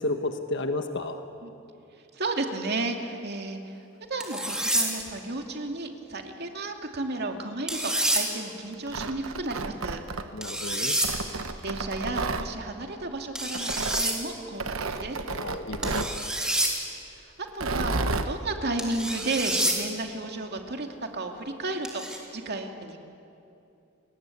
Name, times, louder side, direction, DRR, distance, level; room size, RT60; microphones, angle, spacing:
voice 1, 0.0-1.2 10.3-10.9 15.4-16.1, left 2 dB, 60° left, 6 dB, 1.5 m, -32 dB
voice 2, 2.1-3.8 4.1-10.0 11.3-15.3 17.5-20.9 21.1-22.0 22.3-23.0, right 2 dB, 55° right, 3 dB, 2.5 m, -33 dB
sound 1, 4.2-4.9 7.7-8.2 10.4-11.1 13.3-14.1 15.8-16.7 18.8-19.8 21.8-22.2, right 1 dB, 5° right, 3.6 m, -27 dB
Tearing, 8.7-10.5 11.0-12.5 13.5-14.1 14.6-16.2 17.5-18.3, right 3 dB, 80° right, 1.3 m, -31 dB
29.5 x 21.5 x 8.6 m, 2.7 s
head